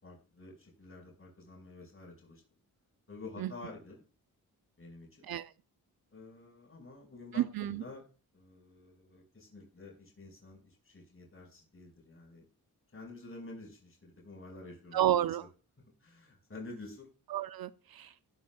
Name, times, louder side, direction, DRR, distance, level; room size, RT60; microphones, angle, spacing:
voice 1, 0.0-2.4 3.1-4.0 4.8-5.2 6.1-8.0 8.3-12.5 12.9-15.0 15.4-15.5 16.0-17.1, left 3 dB, 35° left, 5.2 m, -49 dB
voice 2, 7.4-7.8 14.9-15.5 17.3-18.1, right 12 dB, 70° right, 0.6 m, -31 dB
15.5 x 10.0 x 2.4 m
cardioid pair, 60°, 38 cm